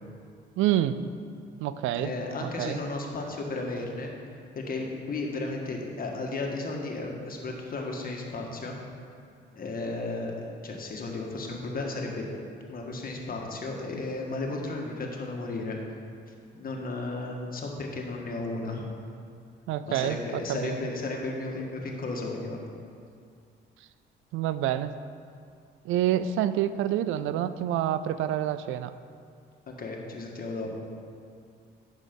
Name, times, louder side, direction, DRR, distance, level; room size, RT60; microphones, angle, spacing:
voice 1, 0.6-1.0 1.6-2.1 2.4-2.8 19.7-20.8 24.3-24.9 25.8-28.9, right 11 dB, 90° right, 13 dB, 0.4 m, -27 dB
voice 2, 1.9-4.1 4.5-8.8 9.5-12.3 12.7-15.8 16.5-18.9 19.8-22.6 29.7-30.8, left 2 dB, 45° left, 0 dB, 1.7 m, -34 dB
10.0 x 6.4 x 5.3 m, 2.3 s
cardioid pair, 90°, 20 cm